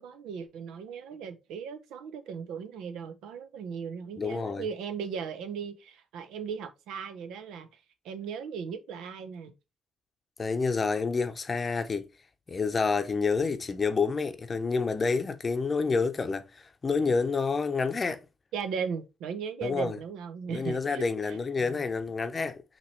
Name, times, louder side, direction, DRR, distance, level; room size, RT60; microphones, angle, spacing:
voice 1, 0.0-9.5 18.5-21.4, right 6 dB, 90° right, 0.7 m, -37 dB
voice 2, 4.2-4.6 10.4-12.1 12.5-18.2 19.6-20.0 20.5-22.6, left 4 dB, 35° left, 0.7 m, -28 dB
5.7 x 2.9 x 3.1 m
cardioid pair, 90°, 0 cm